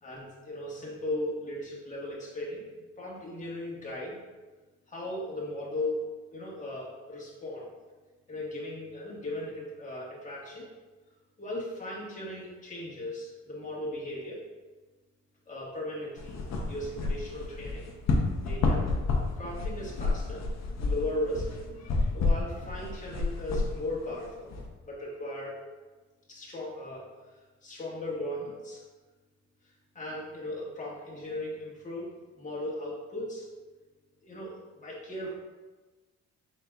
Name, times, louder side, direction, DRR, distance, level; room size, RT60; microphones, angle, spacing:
voice 1, 0.0-2.6 3.0-4.2 4.9-6.0 6.3-7.7 8.3-10.7 11.4-14.4 15.5-16.4 16.7-17.9 18.4-18.8 19.3-20.5 20.8-21.4 21.8-24.5 24.8-25.6 26.3-27.1 27.6-28.8 29.9-32.1 32.4-33.5 34.3-35.3, left 1 dB, 25° left, -5 dB, 1.5 m, -37 dB
sound 1, 16.2-24.7, left 3 dB, 60° left, 0.8 m, -30 dB
5.1 x 3.9 x 2.3 m, 1.3 s
cardioid pair, 90°, 30 cm